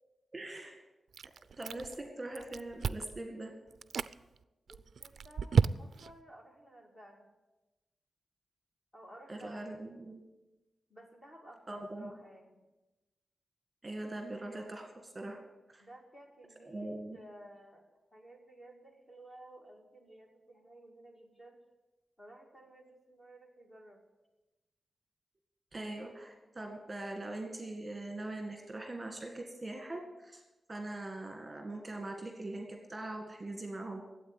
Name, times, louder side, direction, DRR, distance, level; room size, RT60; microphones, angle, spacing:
voice 1, 0.3-0.8 1.6-3.5 9.3-10.2 11.7-12.1 13.8-15.4 15.7-15.8 16.7-17.2 25.7-30.4 30.7-34.0, right 2 dB, 20° right, 3 dB, 1.9 m, -42 dB
Chewing mastication, 1.1-2.1 2.3-3.2 3.7-4.1 4.7-6.1, right 6 dB, 70° right, 0.3 m, -31 dB
voice 2, 4.7-7.3 8.9-9.7 10.9-12.6 15.8-17.8 18.1-21.6 22.2-24.0, right 1 dB, 20° left, 1 dB, 2.1 m, -55 dB
12.5 x 8.4 x 9.3 m, 1.1 s
wide cardioid pair, 165°, 0 cm